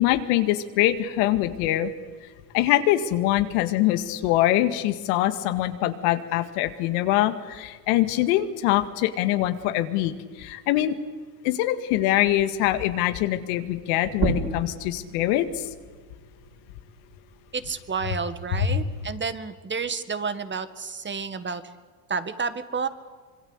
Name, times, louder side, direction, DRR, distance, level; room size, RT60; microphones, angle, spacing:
voice 1, 0.0-1.9 2.5-10.1 10.4-11.0 11.4-15.5 18.7-18.8, left 14 dB, 70° left, 9 dB, 2.1 m, -23 dB
sound 1, 14.0-19.2, right 4 dB, 45° right, 5.7 m, -34 dB
voice 2, 17.5-21.6 22.1-22.9, right 5 dB, 25° right, 11 dB, 1.9 m, -30 dB
26.0 x 23.0 x 8.2 m, 1.5 s
hypercardioid pair, 85°, 48 cm